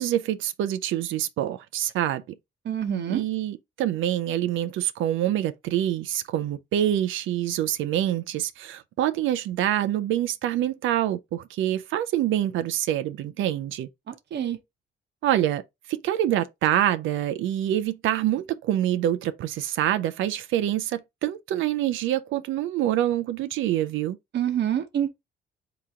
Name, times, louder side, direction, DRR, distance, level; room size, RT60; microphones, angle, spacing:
voice 1, 0.0-2.2 3.1-13.9 15.2-15.6 15.9-24.2, right 12 dB, 80° right, 0.4 m, -26 dB
voice 2, 2.6-3.2 14.1-14.6 24.3-25.1, right 9 dB, 60° right, 0.9 m, -27 dB
3.6 x 2.9 x 4.8 m
cardioid pair, 90°, 20 cm